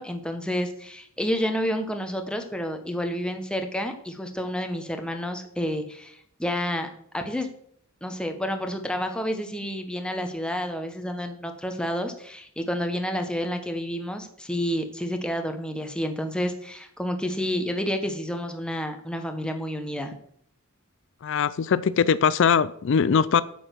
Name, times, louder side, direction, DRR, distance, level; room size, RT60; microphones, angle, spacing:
voice 1, 0.0-6.9 7.1-7.5 8.0-20.1, equal, 5° left, 5 dB, 1.0 m, -29 dB
voice 2, 21.2-23.4, left 6 dB, 60° left, 17 dB, 0.4 m, -21 dB
8.6 x 7.1 x 6.2 m, 0.67 s
head